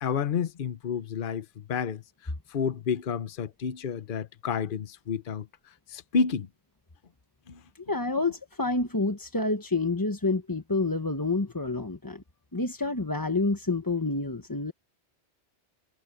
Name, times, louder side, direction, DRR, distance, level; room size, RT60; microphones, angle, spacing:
voice 1, 0.0-2.0 2.5-5.5 5.9-6.5 7.5-7.6, left 6 dB, 50° left, 1.0 m, -30 dB
voice 2, 7.7-12.2 12.5-14.7, left 3 dB, 20° left, 1.1 m, -28 dB
omnidirectional pair, 1.2 m